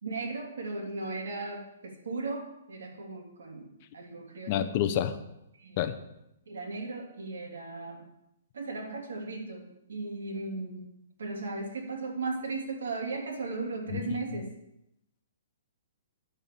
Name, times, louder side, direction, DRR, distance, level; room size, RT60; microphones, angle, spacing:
voice 1, 0.0-4.7 5.5-5.8 6.5-8.1 8.5-10.9 11.2-14.5, right 3 dB, 85° right, 1 dB, 3.3 m, -36 dB
voice 2, 4.5-5.2 5.8-6.0 13.9-14.5, left 10 dB, 30° left, 9 dB, 0.8 m, -29 dB
10.0 x 7.0 x 7.1 m, 0.83 s
hypercardioid pair, 170°, 0 cm